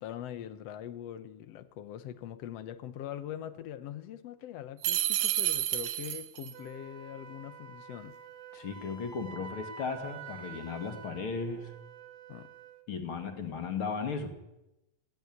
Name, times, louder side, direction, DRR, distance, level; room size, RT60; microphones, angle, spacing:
voice 1, 0.0-8.2 12.3-12.5, left 11 dB, 85° left, 11 dB, 1.4 m, -42 dB
sound 1, 4.8-6.5, right 13 dB, 75° right, 2.4 m, -30 dB
Wind instrument woodwind instrument, 6.5-12.9, right 5 dB, 55° right, 1.3 m, -48 dB
voice 2, 8.5-11.7 12.9-14.3, left 5 dB, 40° left, 6 dB, 2.7 m, -36 dB
20.0 x 16.5 x 9.4 m, 0.95 s
omnidirectional pair, 4.2 m